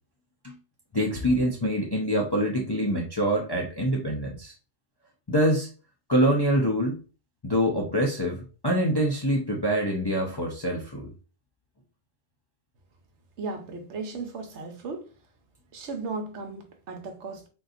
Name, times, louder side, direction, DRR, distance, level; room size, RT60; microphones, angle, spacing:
voice 1, 0.9-4.5 5.3-5.7 6.1-7.0 7.4-11.1, equal, 35° left, 0.4 m, -25 dB
voice 2, 13.4-15.1 15.7-17.5, right 4 dB, 70° right, 1.0 m, -36 dB
3.8 x 2.7 x 2.4 m
omnidirectional pair, 1.2 m